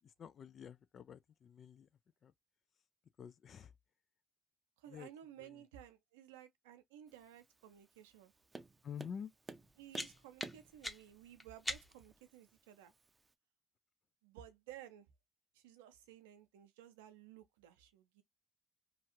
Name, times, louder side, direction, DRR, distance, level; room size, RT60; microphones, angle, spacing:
voice 1, 0.0-1.9 2.2-2.3 3.2-3.7 4.9-5.1 5.4-5.6 8.8-9.3, left 7 dB, 55° left, 0.4 m, -49 dB
voice 2, 4.8-8.3 9.8-12.9 14.2-15.1 15.5-18.2, right 11 dB, 90° right, 0.5 m, -56 dB
Tap, 7.1-13.3, right 3 dB, 25° right, 0.5 m, -56 dB
sound 1, 9.5-12.2, left 1 dB, 15° left, 0.9 m, -45 dB
2.8 x 2.4 x 2.8 m
hypercardioid pair, 55°, 0 cm